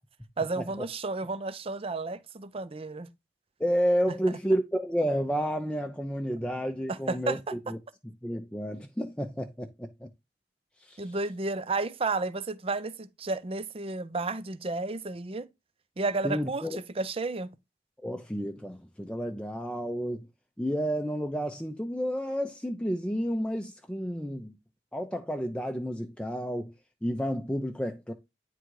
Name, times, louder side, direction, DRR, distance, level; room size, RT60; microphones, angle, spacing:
voice 1, 0.4-3.1 6.9-7.5 11.0-15.5 16.0-17.5, right 3 dB, 35° right, 0.6 m, -32 dB
voice 2, 3.6-7.8 8.2-10.1 10.8-11.2 16.2-16.8 18.0-20.3 20.6-24.6 24.9-26.7 27.0-28.1, equal, 5° left, 0.6 m, -31 dB
9.6 x 3.7 x 4.7 m
head